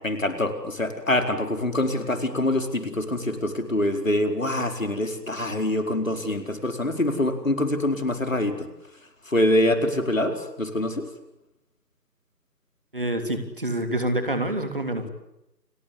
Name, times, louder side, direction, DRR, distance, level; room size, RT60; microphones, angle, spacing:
voice 1, 0.0-8.7 9.3-11.1, left 1 dB, 50° left, 7 dB, 4.6 m, -25 dB
voice 2, 12.9-15.0, right 1 dB, 30° right, 7 dB, 3.2 m, -27 dB
30.0 x 21.5 x 8.3 m, 0.88 s
figure-of-eight pair, 175°, 50 cm